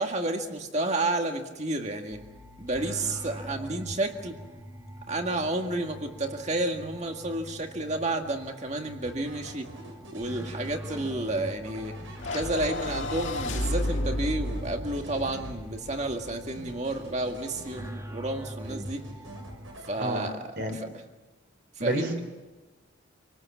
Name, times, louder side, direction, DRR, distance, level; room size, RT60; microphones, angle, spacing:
voice 1, 0.0-2.2 2.6-4.4 5.1-9.7 10.1-11.9 12.3-19.0 19.9-20.9 21.8-22.2, right 2 dB, 35° right, 4 dB, 2.0 m, -31 dB
sound 1, 2.1-19.8, equal, 15° right, 1.7 m, -43 dB
sound 2, 9.0-15.9 16.2-18.3 18.6-20.7, right 1 dB, 75° right, 6.7 m, -47 dB
sound 3, 12.2-16.6, left 1 dB, 65° left, 2.1 m, -32 dB
voice 2, 21.8-22.2, right 1 dB, 50° right, 5 dB, 3.8 m, -29 dB
27.0 x 19.5 x 7.3 m, 1.2 s
head